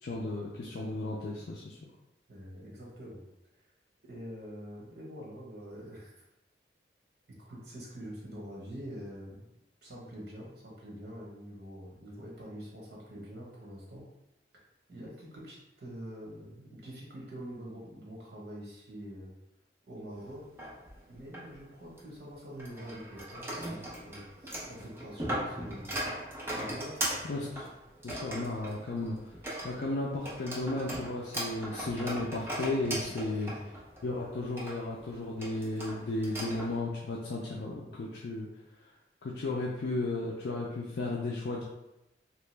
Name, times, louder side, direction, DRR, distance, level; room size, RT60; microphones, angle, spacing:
voice 1, 0.0-1.8 27.2-27.7 28.0-29.3 29.6-33.5 34.0-38.5 38.8-38.9 39.2-41.6, left 2 dB, 70° left, -4 dB, 0.4 m, -34 dB
voice 2, 2.3-3.2 4.0-6.3 7.4-9.4 9.8-14.0 14.9-19.3 19.9-20.4 21.1-26.0 26.5-27.0 33.0-33.7, equal, 65° right, -4 dB, 1.1 m, -45 dB
sound 1, 20.2-22.0 22.6-36.8, right 1 dB, 15° right, 0.5 m, -39 dB
2.9 x 2.2 x 3.2 m, 0.89 s
head